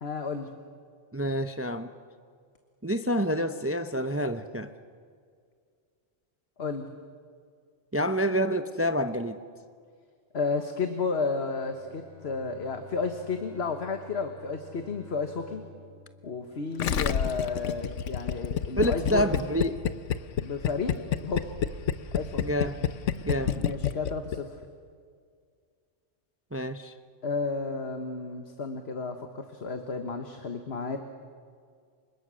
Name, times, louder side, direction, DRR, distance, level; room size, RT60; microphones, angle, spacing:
voice 1, 0.0-0.5 6.6-6.9 10.3-15.6 16.2-19.4 20.4-21.5 22.1-22.4 23.6-24.6 27.2-31.0, left 4 dB, 60° left, 6 dB, 1.6 m, -32 dB
voice 2, 1.1-1.9 2.8-4.7 7.9-9.4 18.8-19.8 22.4-22.8 23.2-23.6 26.5-26.9, equal, 15° right, 9 dB, 0.7 m, -28 dB
Bowed string instrument, 11.5-17.5, left 2 dB, 50° right, 3.3 m, -52 dB
sound 1, 16.5-24.2, right 2 dB, 70° right, 3.9 m, -48 dB
Gurgling, 16.8-24.4 24.6-24.7, left 9 dB, 80° left, 1.2 m, -28 dB
29.5 x 25.5 x 6.4 m, 2.1 s
omnidirectional pair, 1.3 m